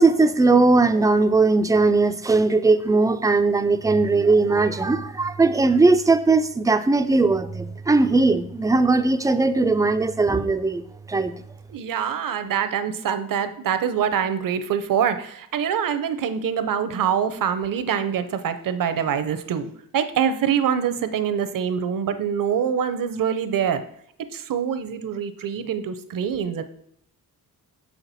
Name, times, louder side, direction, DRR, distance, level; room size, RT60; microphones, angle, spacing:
voice 1, 0.0-10.8 11.1-11.3, right 3 dB, 10° right, 0.3 m, -19 dB
voice 2, 11.7-23.8 24.3-26.6, right 8 dB, 60° right, 0.7 m, -25 dB
6.4 x 5.9 x 4.1 m
cardioid pair, 120°, 37 cm